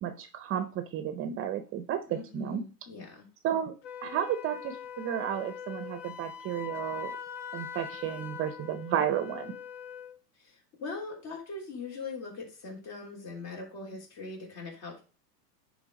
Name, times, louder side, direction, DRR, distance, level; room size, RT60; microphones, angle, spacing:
voice 1, 0.0-2.6 3.4-3.7 4.0-7.1 7.5-9.5, right 10 dB, 30° right, 9 dB, 0.6 m, -32 dB
voice 2, 2.1-3.3 10.4-15.0, left 3 dB, 45° left, 0 dB, 3.5 m, -41 dB
Wind instrument woodwind instrument, 3.8-10.2, left 7 dB, 25° left, 0.3 m, -42 dB
9.9 x 3.5 x 5.2 m, 0.35 s
hypercardioid pair, 120°, 48 cm